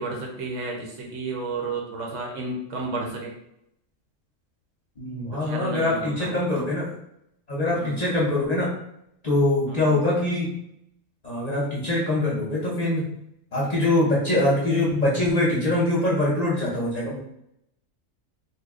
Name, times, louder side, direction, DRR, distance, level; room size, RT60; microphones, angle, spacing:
voice 1, 0.0-3.3 5.3-6.4 7.7-8.0 9.7-10.0, right 3 dB, 70° right, -1 dB, 1.0 m, -32 dB
voice 2, 5.0-6.9 7.5-8.7 9.2-10.5 11.2-13.1 13.5-17.2, left 1 dB, 40° left, -6 dB, 0.7 m, -23 dB
2.9 x 2.2 x 3.5 m, 0.78 s
omnidirectional pair, 1.4 m